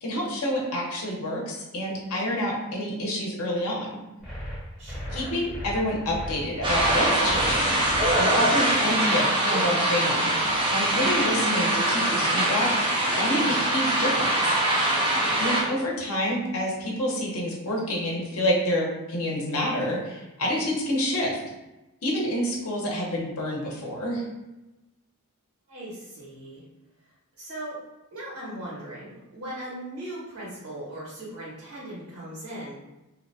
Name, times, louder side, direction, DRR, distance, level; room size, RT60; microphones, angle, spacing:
voice 1, 0.0-3.9 5.1-7.8 8.2-12.7 13.2-14.6 15.4-21.4 22.0-24.2, equal, 70° left, -2 dB, 0.7 m, -28 dB
sound 1, 4.2-8.1, equal, 5° right, 1.1 m, -36 dB
voice 2, 4.8-5.5 15.6-15.8 25.7-26.6 27.4-27.7 28.1-32.7, right 1 dB, 75° right, -6 dB, 1.5 m, -39 dB
sound 2, 6.6-15.6, right 1 dB, 20° right, 0.4 m, -23 dB
2.8 x 2.1 x 2.6 m, 1.0 s
head